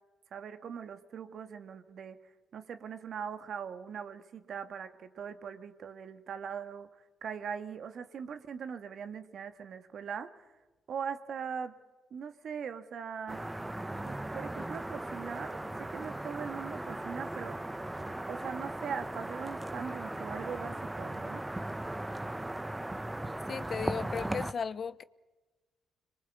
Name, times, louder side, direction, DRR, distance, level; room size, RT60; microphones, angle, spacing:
voice 1, 0.3-2.2 2.5-6.9 7.2-10.5 10.9-11.7 12.1-13.4 14.0-17.6 18.3-21.4, right 7 dB, 60° right, 1.9 m, -41 dB
sound 1, 13.3-24.5, right 1 dB, 15° right, 1.2 m, -38 dB
voice 2, 23.5-25.0, left 6 dB, 50° left, 0.9 m, -36 dB
26.0 x 23.0 x 8.2 m
hypercardioid pair, 50°, 0 cm